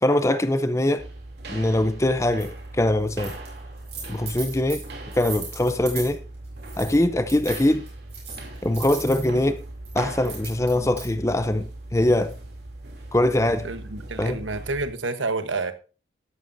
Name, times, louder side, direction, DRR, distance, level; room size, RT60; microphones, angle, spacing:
voice 1, 0.0-1.1 1.5-3.4 4.1-4.8 5.1-6.2 6.8-7.8 8.6-9.6 9.9-12.4 13.1-13.7 14.2-14.4, left 1 dB, 15° left, 0.6 m, -22 dB
sound 1, 1.0-14.9, right 2 dB, 60° right, 2.9 m, -39 dB
sound 2, 2.4-2.5 3.1-3.5 3.8-6.1 6.6-7.0 7.3-9.3 9.8-11.1, right 6 dB, 35° right, 4.9 m, -38 dB
voice 2, 13.6-15.7, right 3 dB, 90° right, 1.2 m, -29 dB
13.0 x 11.5 x 2.7 m
head